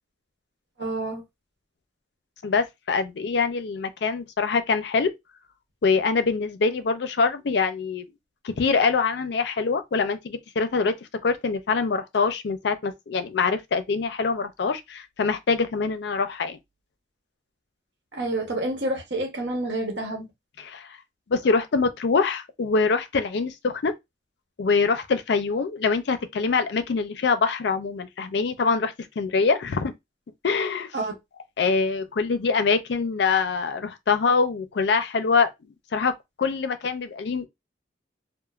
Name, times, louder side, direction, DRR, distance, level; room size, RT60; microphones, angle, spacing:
voice 1, 0.8-1.2 18.1-20.3 30.9-31.1, right 2 dB, 70° right, 1.0 m, -28 dB
voice 2, 2.4-5.1 5.8-8.1 8.4-10.9 11.2-16.6 20.6-20.9 21.3-23.9 24.6-29.9 30.4-30.9 31.6-35.5 35.9-36.1 36.4-37.5, left 4 dB, 70° left, 0.4 m, -24 dB
3.0 x 2.0 x 2.4 m
head